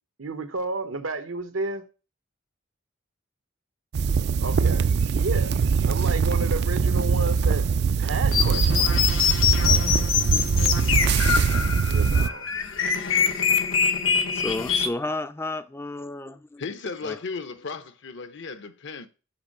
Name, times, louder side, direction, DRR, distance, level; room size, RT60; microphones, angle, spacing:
voice 1, 0.2-1.9 4.4-4.9 5.2-7.7 8.0-9.1 11.8-12.5, right 3 dB, 90° right, 1.1 m, -32 dB
sound 1, 3.9-12.3, right 5 dB, 55° right, 0.3 m, -22 dB
sound 2, 8.3-14.9, left 7 dB, 85° left, 1.1 m, -24 dB
voice 2, 14.3-16.6 17.0-17.2, left 2 dB, 10° left, 0.4 m, -32 dB
voice 3, 16.6-19.1, left 4 dB, 65° left, 0.8 m, -35 dB
5.9 x 5.4 x 6.5 m
head